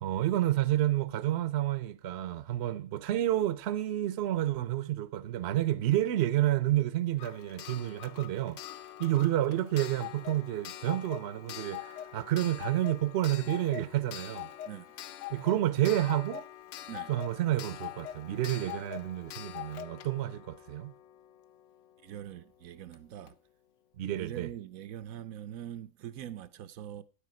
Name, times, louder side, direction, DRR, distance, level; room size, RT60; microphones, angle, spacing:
voice 1, 0.0-8.6 9.0-14.5 15.3-16.5 17.1-20.9 24.0-24.5, right 13 dB, 60° right, 0.8 m, -30 dB
Clock, 7.2-21.8 22.9-23.0 23.3-23.4, left 12 dB, 65° left, 0.9 m, -44 dB
voice 2, 22.0-23.4 24.2-27.0, right 11 dB, 90° right, 1.1 m, -43 dB
9.1 x 8.4 x 4.7 m
omnidirectional pair, 1.4 m